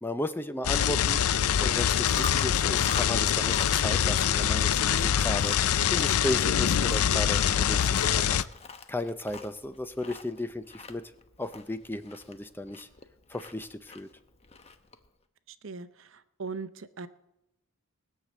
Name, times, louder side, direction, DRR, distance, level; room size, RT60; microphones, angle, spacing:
voice 1, 0.0-8.5 8.9-11.1 11.4-12.9 13.3-14.1, left 1 dB, 10° left, 11 dB, 0.4 m, -35 dB
sound 1, 0.6-8.4, left 9 dB, 85° left, 0.5 m, -24 dB
Chewing mastication, 1.9-15.1, left 4 dB, 30° left, 0.8 m, -44 dB
voice 2, 15.5-17.1, right 4 dB, 60° right, 13 dB, 0.7 m, -40 dB
19.5 x 6.6 x 7.4 m, 0.91 s
head